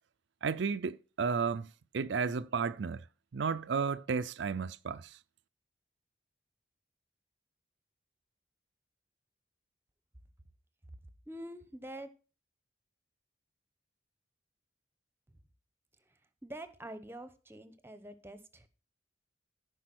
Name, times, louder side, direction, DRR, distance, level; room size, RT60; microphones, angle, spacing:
voice 1, 0.4-1.7 1.9-3.1 3.3-5.2, right 5 dB, 70° right, 0.4 m, -33 dB
voice 2, 11.3-12.1 16.1-18.7, right 1 dB, 15° right, 1.0 m, -46 dB
14.5 x 5.1 x 6.1 m
head